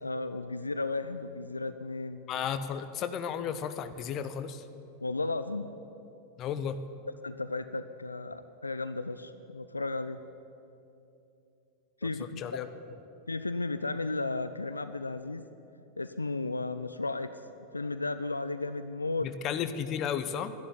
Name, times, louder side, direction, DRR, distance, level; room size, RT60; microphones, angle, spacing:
voice 1, 0.0-2.2 5.0-5.7 7.2-10.2 12.0-12.4 13.3-15.5 16.0-17.3 17.7-19.3, left 3 dB, 80° left, 11 dB, 0.4 m, -34 dB
voice 2, 2.3-4.7 6.4-6.8 12.2-12.7 19.2-20.5, left 8 dB, 35° left, 11 dB, 0.9 m, -34 dB
12.0 x 11.5 x 9.7 m, 2.8 s
figure-of-eight pair, 90°, 0 cm